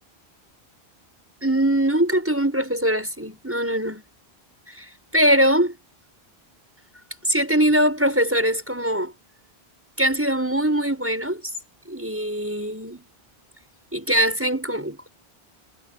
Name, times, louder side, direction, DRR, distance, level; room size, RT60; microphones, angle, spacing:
voice 1, 1.4-4.0 4.7-5.8 7.2-9.1 10.0-11.4 11.9-13.1 13.9-15.1, right 1 dB, 10° right, 6.5 m, -22 dB
omnidirectional pair, 1.1 m